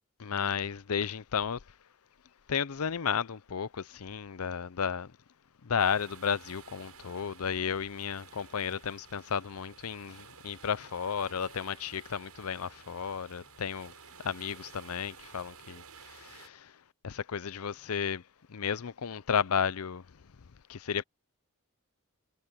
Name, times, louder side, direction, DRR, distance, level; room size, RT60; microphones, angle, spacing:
voice 1, 0.2-1.6 2.5-5.1 5.6-13.9 14.2-16.7 17.0-18.2 18.5-20.0 20.7-21.0, left 7 dB, 75° left, 0.6 m, -33 dB
sound 1, 5.8-16.5, right 6 dB, 85° right, 7.8 m, -53 dB
head